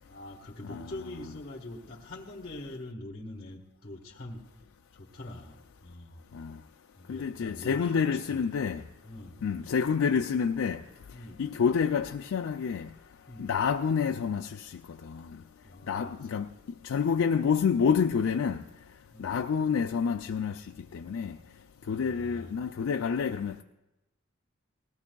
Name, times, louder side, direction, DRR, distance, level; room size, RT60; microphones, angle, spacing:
voice 1, 0.0-4.4 4.9-6.2 7.0-8.4 9.0-9.4 11.1-11.4 13.3-13.5 15.6-16.2 19.1-19.4 21.8-22.5, left 1 dB, 40° left, 1.4 m, -44 dB
voice 2, 7.1-8.8 9.4-10.8 11.4-12.9 13.4-15.2 15.9-16.5 16.8-18.6 19.2-20.6 20.9-21.4 21.9-23.6, left 6 dB, 85° left, 0.4 m, -28 dB
19.0 x 16.0 x 2.3 m
head